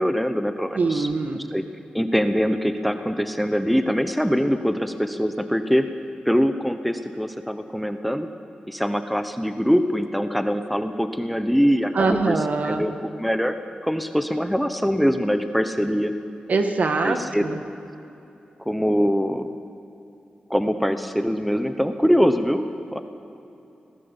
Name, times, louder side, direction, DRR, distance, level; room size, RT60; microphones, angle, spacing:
voice 1, 0.0-1.1 1.3-1.6 1.9-5.9 6.2-8.3 8.7-12.4 12.6-13.6 13.8-16.1 17.0-17.4 18.6-19.5 20.5-23.0, equal, ahead, 8 dB, 1.1 m, -23 dB
voice 2, 0.7-1.4 11.9-12.8 16.5-17.6, right 3 dB, 60° right, 6 dB, 1.9 m, -23 dB
26.5 x 18.0 x 7.2 m, 2.9 s
wide cardioid pair, 100°, 3 cm